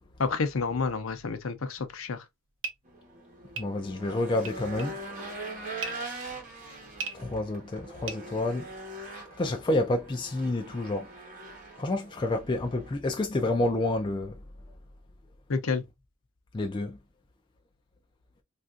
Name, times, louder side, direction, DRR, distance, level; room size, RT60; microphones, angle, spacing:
voice 1, 0.2-2.2 15.5-15.8, left 4 dB, 65° left, 0.6 m, -29 dB
sound 1, 2.2-9.0, right 5 dB, 60° right, 0.8 m, -41 dB
Race car auto racing / Engine, 2.9-12.9, right 2 dB, 40° right, 1.1 m, -42 dB
voice 2, 3.6-5.0 7.1-8.7 9.4-11.1 11.8-14.3 16.5-17.0, left 2 dB, 20° left, 0.3 m, -29 dB
3.4 x 2.5 x 2.4 m
head